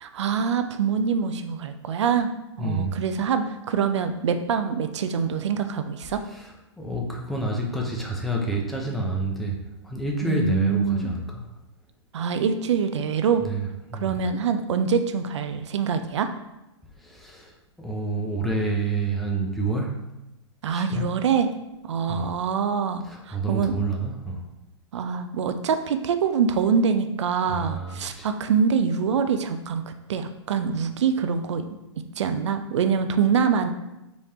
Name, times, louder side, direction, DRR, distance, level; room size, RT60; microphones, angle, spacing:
voice 1, 0.0-2.3 2.6-6.2 10.2-11.1 12.1-13.4 14.0-16.3 20.6-21.5 21.9-23.7 24.9-31.7 32.2-33.7, right 6 dB, 70° right, 8 dB, 0.5 m, -24 dB
voice 2, 2.6-2.9 6.3-6.5 6.8-9.5 9.8-11.4 13.4-13.6 13.9-14.2 17.0-17.5 17.8-19.9 20.7-21.0 22.1-22.3 23.0-24.4 27.5-28.3, right 2 dB, ahead, -2 dB, 0.7 m, -28 dB
5.4 x 3.3 x 2.8 m, 0.95 s
hypercardioid pair, 120°, 15 cm